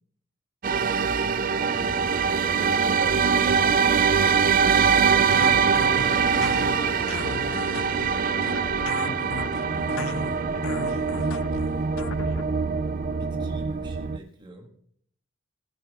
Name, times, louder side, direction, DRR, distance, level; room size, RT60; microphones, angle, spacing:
sound 1, 0.6-14.2, right 6 dB, 40° right, 0.4 m, -23 dB
Brass instrument, 1.6-13.9, right 1 dB, 20° left, 1.2 m, -40 dB
voice 1, 2.6-4.6 8.2-8.5, right 2 dB, 70° right, -1 dB, 2.4 m, -37 dB
voice 2, 3.2-3.6 4.9-6.9 10.1-10.7 13.1-14.7, right 1 dB, 20° right, 2 dB, 1.5 m, -45 dB
sound 2, 5.3-12.4, left 5 dB, 75° left, 0.5 m, -36 dB
14.5 x 6.0 x 4.7 m, 0.67 s
head